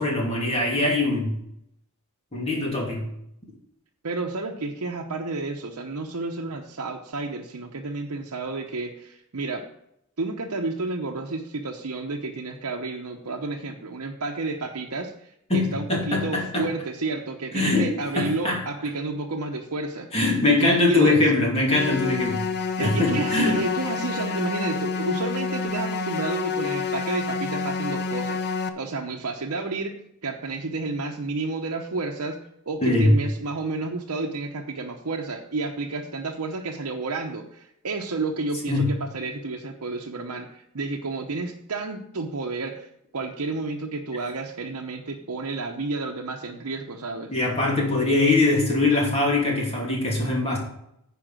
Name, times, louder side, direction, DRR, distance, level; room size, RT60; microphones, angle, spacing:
voice 1, 0.0-1.4 2.3-3.1 15.5-16.6 17.5-17.9 18.2-18.6 20.1-22.4 22.8-23.6 32.8-33.1 38.7-38.9 47.3-50.6, left 2 dB, 30° left, -2 dB, 2.7 m, -22 dB
voice 2, 4.0-9.6 10.2-20.1 20.4-21.2 22.8-29.9 30.2-32.4 32.7-42.9 43.1-47.3, right 3 dB, 80° right, 0 dB, 0.9 m, -31 dB
sound 1, 21.7-28.7, left 4 dB, 50° left, 0.7 m, -28 dB
10.0 x 5.0 x 6.2 m, 0.76 s
head